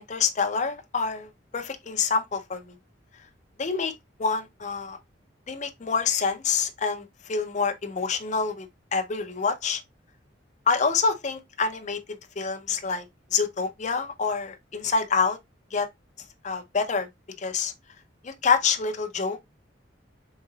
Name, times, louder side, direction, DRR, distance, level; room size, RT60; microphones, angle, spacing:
voice 1, 0.0-2.6 3.6-3.9 4.2-5.0 5.5-8.7 8.9-9.8 10.7-12.0 12.4-13.0 13.3-15.4 15.7-15.9 16.4-17.1 17.4-17.7 18.2-19.4, left 5 dB, 40° left, 0.5 m, -26 dB
3.8 x 3.7 x 2.7 m
head